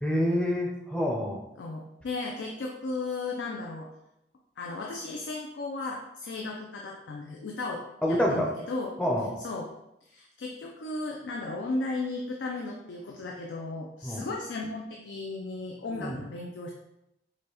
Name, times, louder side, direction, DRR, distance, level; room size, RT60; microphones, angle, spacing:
voice 1, 0.0-1.4 8.0-8.5 9.0-9.4 14.0-14.3 16.0-16.2, equal, 5° left, -1 dB, 0.5 m, -27 dB
voice 2, 1.6-3.9 4.6-7.8 8.1-8.9 9.4-9.7 10.1-16.7, left 3 dB, 80° left, 0 dB, 0.4 m, -35 dB
4.8 x 2.2 x 2.9 m, 0.86 s
head